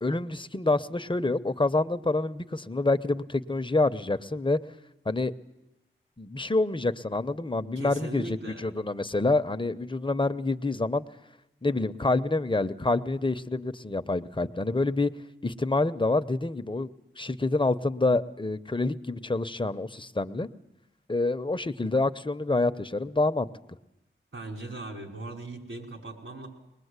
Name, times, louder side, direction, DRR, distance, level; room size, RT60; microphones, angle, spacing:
voice 1, 0.0-4.6 5.1-5.3 6.2-11.0 11.6-15.1 15.4-16.9 17.2-20.5 21.1-23.5, left 2 dB, 25° left, 10 dB, 0.8 m, -27 dB
voice 2, 7.8-8.7 24.3-26.5, right 2 dB, 75° right, 1 dB, 5.2 m, -39 dB
22.5 x 20.5 x 8.2 m, 0.92 s
wide cardioid pair, 55°, 21 cm